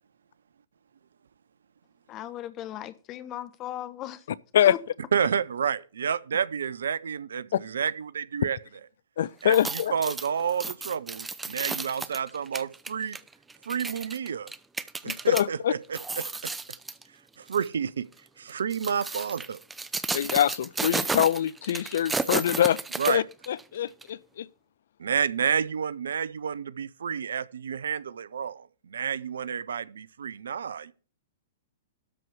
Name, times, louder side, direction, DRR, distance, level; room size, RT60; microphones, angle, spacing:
voice 1, 2.1-4.3 4.6-4.8, left 12 dB, 30° left, 1.1 m, -37 dB
voice 2, 5.1-8.6 9.4-13.2 13.7-14.5 15.0-16.5 17.4-18.1 18.4-19.6 23.0-23.2 25.0-30.9, right 7 dB, 75° right, 0.6 m, -30 dB
voice 3, 9.2-9.9 15.0-15.7 20.1-22.8 23.1-24.5, left 10 dB, 65° left, 0.4 m, -24 dB
sound 1, 9.4-15.4 15.8-17.0 17.5-17.7 18.5-23.6 24.0-24.1, right 3 dB, 10° right, 0.6 m, -33 dB
13.0 x 4.6 x 7.0 m
hypercardioid pair, 115°, 0 cm